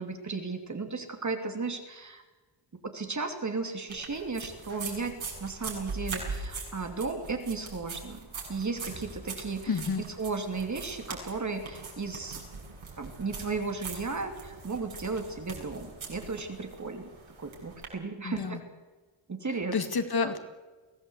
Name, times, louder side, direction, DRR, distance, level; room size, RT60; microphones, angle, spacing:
voice 1, 0.0-2.2 2.8-5.1 5.4-9.8 10.2-12.4 13.0-17.1 17.4-18.6 19.3-19.8, right 4 dB, 35° right, 5 dB, 2.9 m, -35 dB
sound 1, 3.9-17.9, right 4 dB, 70° right, 7.3 m, -42 dB
voice 2, 9.7-10.0 18.2-18.6 19.7-20.4, left 5 dB, 50° left, 8 dB, 2.1 m, -29 dB
22.5 x 17.5 x 8.2 m, 1.3 s
wide cardioid pair, 145°, 49 cm